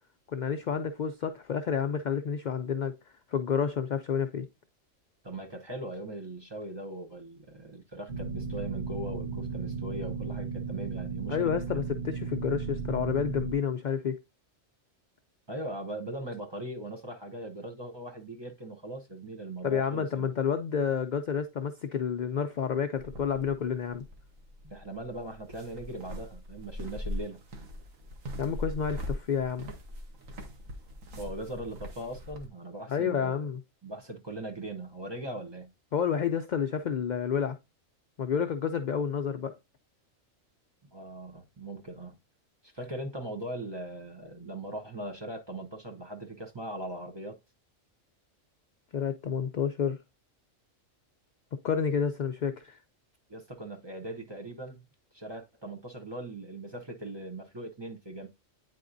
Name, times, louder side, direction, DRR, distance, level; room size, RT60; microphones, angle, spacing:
voice 1, 0.3-3.0 3.3-4.5 11.3-14.2 19.6-24.0 28.4-29.7 32.9-33.6 35.9-37.6 38.2-39.5 48.9-50.0 51.6-52.8, left 7 dB, 75° left, 0.4 m, -30 dB
voice 2, 5.2-11.5 15.5-20.3 24.6-27.4 31.2-33.5 33.8-35.7 40.9-42.1 42.6-47.4 53.3-54.8 55.1-58.3, right 1 dB, 25° right, 0.7 m, -40 dB
sound 1, 8.1-13.5, right 5 dB, 55° right, 1.0 m, -35 dB
sound 2, 23.0-32.5, left 1 dB, 85° right, 1.5 m, -41 dB
9.2 x 4.2 x 2.6 m
omnidirectional pair, 1.3 m